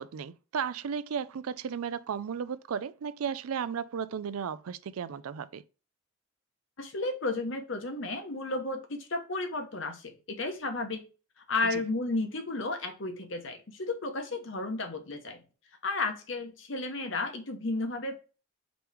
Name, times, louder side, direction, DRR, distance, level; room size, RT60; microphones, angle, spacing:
voice 1, 0.0-5.6 11.7-11.8, right 7 dB, 85° right, 0.4 m, -34 dB
voice 2, 6.8-11.0 11.5-15.4 15.8-18.1, left 2 dB, 60° left, 1.0 m, -33 dB
5.2 x 3.0 x 3.3 m
head